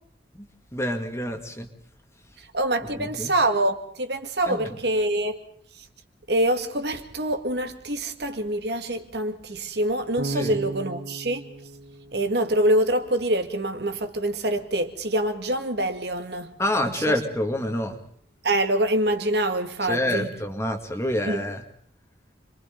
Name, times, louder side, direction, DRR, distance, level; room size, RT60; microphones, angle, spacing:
voice 1, 0.3-1.7 3.0-3.3 4.5-4.7 10.3-10.6 16.6-18.0 19.9-21.6, left 1 dB, 15° left, 2.1 m, -27 dB
voice 2, 2.4-5.4 5.8-5.9 6.3-11.4 12.1-16.5 16.8-17.2 18.4-20.3 21.3-21.4, right 1 dB, 60° right, 2.0 m, -25 dB
Bass guitar, 10.2-13.2, right 2 dB, 80° right, 1.2 m, -36 dB
30.0 x 23.5 x 3.9 m
head